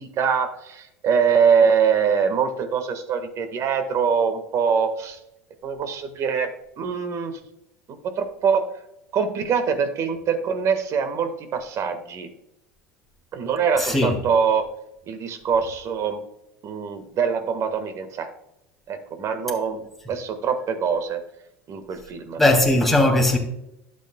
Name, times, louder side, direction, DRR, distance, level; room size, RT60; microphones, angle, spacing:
voice 1, 0.0-5.2 5.6-6.5 6.8-7.4 7.9-8.6 9.1-12.3 13.3-14.7 15.1-16.2 16.6-18.3 18.9-19.8 20.1-21.2 21.7-22.4, right 6 dB, 45° right, 1.5 m, -23 dB
voice 2, 13.8-14.2 22.4-23.4, left 1 dB, ahead, 2.7 m, -18 dB
12.0 x 8.4 x 2.2 m
hypercardioid pair, 85°, 7 cm